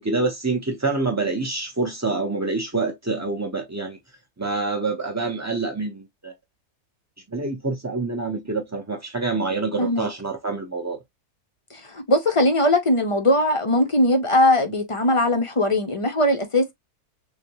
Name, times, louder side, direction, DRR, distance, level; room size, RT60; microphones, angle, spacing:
voice 1, 0.0-4.0 4.4-6.3 7.3-11.0, right 3 dB, 25° right, 0.4 m, -26 dB
voice 2, 9.8-10.1 11.7-16.7, left 1 dB, 40° left, 0.4 m, -20 dB
6.5 x 2.3 x 2.9 m
omnidirectional pair, 1.6 m